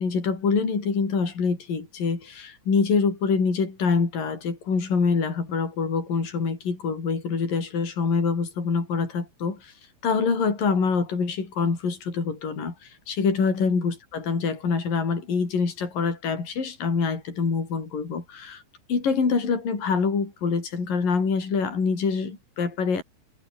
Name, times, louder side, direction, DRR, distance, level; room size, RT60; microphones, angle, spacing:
voice 1, 0.0-9.7 10.0-12.7 13.1-18.6 18.9-23.0, left 5 dB, 50° left, 7.5 m, -25 dB
omnidirectional pair, 5.3 m